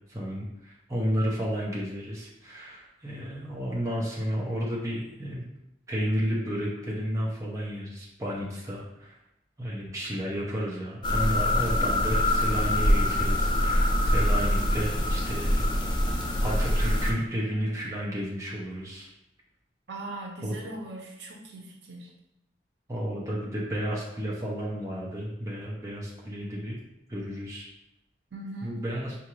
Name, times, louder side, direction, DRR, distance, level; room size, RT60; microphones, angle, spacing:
voice 1, 0.1-5.4 5.9-9.2 9.6-16.0 16.4-19.1 20.4-20.5 22.9-26.8 27.1-27.7 28.6-29.2, equal, 15° right, -4 dB, 0.7 m, -32 dB
sound 1, 11.0-17.1, left 1 dB, 25° left, 0.4 m, -24 dB
voice 2, 19.9-22.1 28.3-28.8, right 2 dB, 80° right, 0 dB, 0.7 m, -40 dB
4.8 x 2.6 x 3.0 m, 0.85 s
head